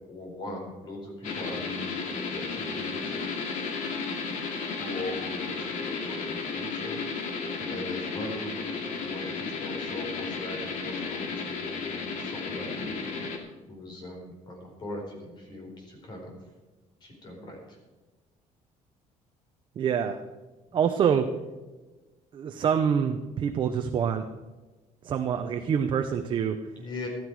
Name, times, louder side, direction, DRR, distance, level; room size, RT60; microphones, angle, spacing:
voice 1, 0.1-3.3 4.8-7.0 7.6-13.1 13.7-16.4 17.0-17.6 20.7-20.8 26.7-27.1, left 1 dB, 35° left, 1 dB, 4.6 m, -40 dB
Steam Train (processed), 1.2-13.4, left 4 dB, 70° left, 2.4 m, -33 dB
voice 2, 19.8-20.2 20.7-21.3 22.3-24.3 25.0-26.6, right 7 dB, 40° right, 6 dB, 0.8 m, -26 dB
15.0 x 13.0 x 4.8 m, 1.2 s
cardioid pair, 165°, 13 cm